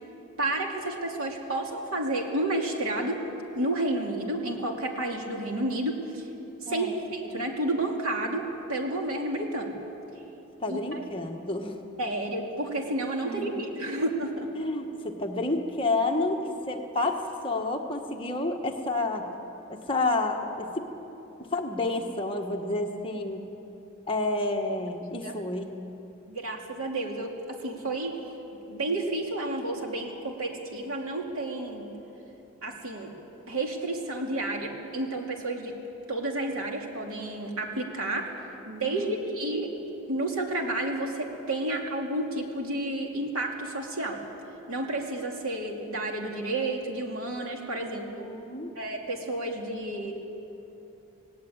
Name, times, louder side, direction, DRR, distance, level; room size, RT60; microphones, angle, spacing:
voice 1, 0.4-3.2 3.5-6.3 6.6-9.8 10.7-11.0 12.0-14.5 25.2-25.3 26.3-28.2 28.7-31.9 32.6-33.1 33.5-35.7 36.1-38.3 38.6-39.8 40.1-44.2 44.7-48.3 48.8-50.1, right 2 dB, 90° right, 1 dB, 2.8 m, -31 dB
voice 2, 6.7-7.0 10.6-11.8 13.2-13.6 14.6-19.3 19.7-20.8 21.4-23.5 24.1-25.7 38.8-39.2 47.9-48.7, left 2 dB, 25° left, 2 dB, 1.4 m, -30 dB
19.5 x 17.5 x 8.7 m, 3.0 s
head